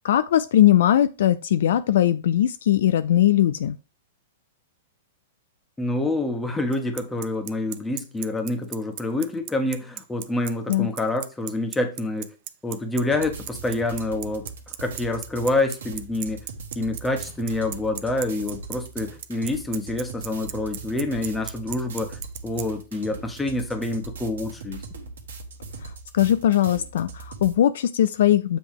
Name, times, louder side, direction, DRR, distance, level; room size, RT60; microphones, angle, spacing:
voice 1, 0.0-3.8 10.7-10.9 26.1-28.6, left 12 dB, 65° left, 0.4 m, -20 dB
voice 2, 5.8-12.3 12.6-14.5 14.8-16.4 16.7-24.8, left 2 dB, 10° left, 1.4 m, -27 dB
Bicycle, 6.7-22.6, right 15 dB, 45° right, 0.5 m, -35 dB
sound 1, 13.1-27.5, right 4 dB, 70° right, 1.4 m, -40 dB
7.6 x 3.4 x 4.7 m
figure-of-eight pair, 105°, 0 cm